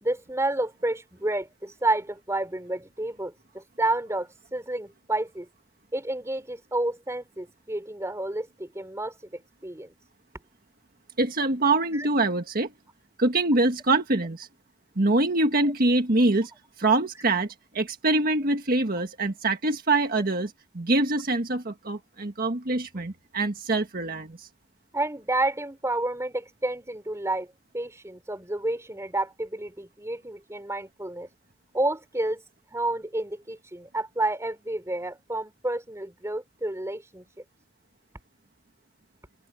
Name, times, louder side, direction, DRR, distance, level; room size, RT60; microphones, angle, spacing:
voice 1, 0.0-5.5 5.9-9.9 11.9-12.1 15.6-15.7 24.9-31.3 31.7-32.4 32.7-37.3, right 2 dB, 15° right, 3.5 m, -30 dB
voice 2, 11.2-12.7 13.2-14.5 14.9-16.5 16.8-24.5, right 2 dB, 50° right, 1.6 m, -24 dB
open air
head